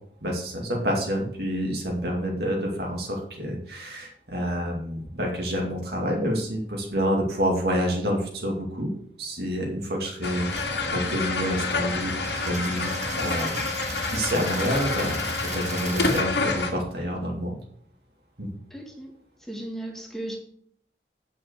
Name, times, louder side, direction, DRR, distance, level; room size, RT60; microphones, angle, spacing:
voice 1, 0.2-8.9 9.2-12.9 13.2-13.7 14.1-15.2 15.5-17.6 18.4-18.5, equal, 60° right, 0 dB, 2.4 m, -28 dB
sound 1, 10.2-16.7, left 3 dB, 70° left, 1.9 m, -28 dB
Coin (dropping), 10.4-16.2, right 6 dB, 40° right, 1.3 m, -40 dB
voice 2, 18.7-19.1 19.4-20.4, right 1 dB, ahead, 1 dB, 1.7 m, -37 dB
8.9 x 6.3 x 6.5 m, 0.63 s
head